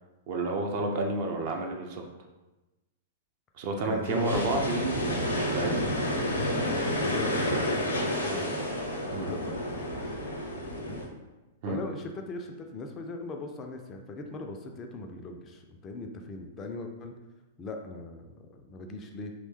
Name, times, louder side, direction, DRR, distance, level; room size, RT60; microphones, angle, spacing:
voice 1, 0.3-2.0 3.6-5.8 9.1-9.3 11.6-11.8, right 2 dB, 45° right, 2 dB, 0.4 m, -30 dB
voice 2, 3.8-4.7 6.2-8.6 9.2-10.2 10.9-11.0 11.6-17.1 17.6-19.3, left 3 dB, 25° left, 4 dB, 0.3 m, -40 dB
sound 1, 4.0-11.1, left 1 dB, 75° left, 0.6 m, -30 dB
3.1 x 2.1 x 3.0 m, 1.1 s
figure-of-eight pair, 100°, 0 cm